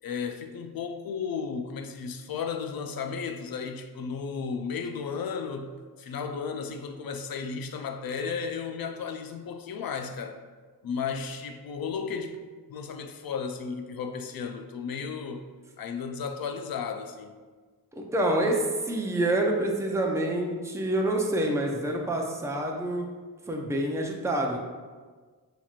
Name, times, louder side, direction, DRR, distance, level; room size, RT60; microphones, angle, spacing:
voice 1, 0.0-10.4 10.8-12.4 12.7-15.5 15.8-17.3, left 5 dB, 65° left, 0.5 m, -34 dB
voice 2, 17.9-23.1 23.5-24.6, right 1 dB, 10° right, 0.5 m, -27 dB
5.8 x 2.8 x 2.4 m
wide cardioid pair, 70°, 39 cm